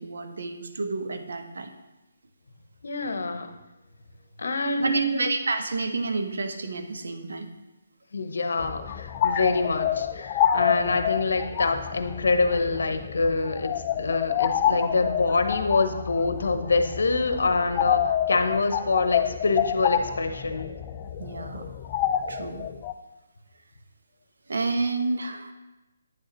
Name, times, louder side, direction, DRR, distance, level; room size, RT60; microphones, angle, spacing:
voice 1, 0.0-1.7 4.8-7.5 10.7-11.1 21.2-21.7 22.3-22.7 24.5-25.5, right 3 dB, 70° right, 6 dB, 0.9 m, -30 dB
voice 2, 2.8-3.5 4.4-5.3 8.1-20.7, left 3 dB, 70° left, 8 dB, 0.8 m, -25 dB
sound 1, 8.6-22.9, left 10 dB, 25° left, 0.3 m, -28 dB
8.9 x 6.4 x 3.0 m, 1.0 s
figure-of-eight pair, 150°, 0 cm